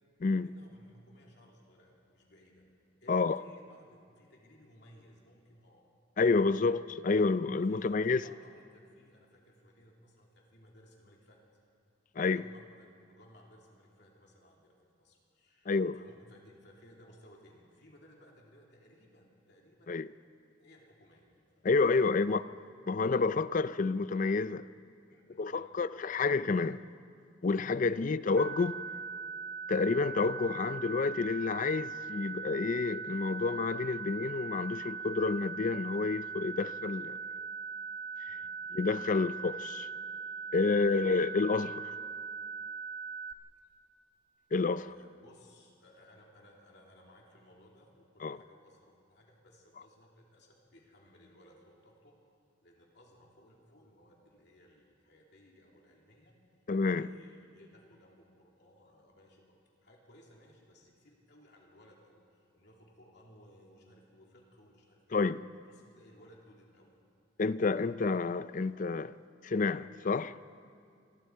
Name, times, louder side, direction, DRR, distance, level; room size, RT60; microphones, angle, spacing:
voice 1, 0.4-2.6 3.0-5.8 7.7-11.5 12.2-20.0 20.6-21.7 22.0-22.4 25.1-25.8 28.0-28.1 38.3-38.5 39.2-39.4 40.7-41.0 44.7-52.1 52.6-56.4 56.9-59.6 59.8-65.2 65.7-67.0, equal, 60° left, 2.9 m, -60 dB
voice 2, 3.1-3.4 6.2-8.2 12.2-12.4 15.7-16.0 19.9-20.1 21.6-22.4 22.9-24.7 25.4-26.8 27.4-28.8 29.7-37.2 38.7-39.9 40.5-41.9 44.5-44.8 48.2-48.4 56.7-57.1 65.1-65.4 67.4-69.1 69.4-70.4, left 4 dB, 40° left, 0.4 m, -29 dB
sound 1, 28.4-43.3, right 5 dB, 60° right, 1.6 m, -40 dB
27.0 x 21.0 x 4.6 m
head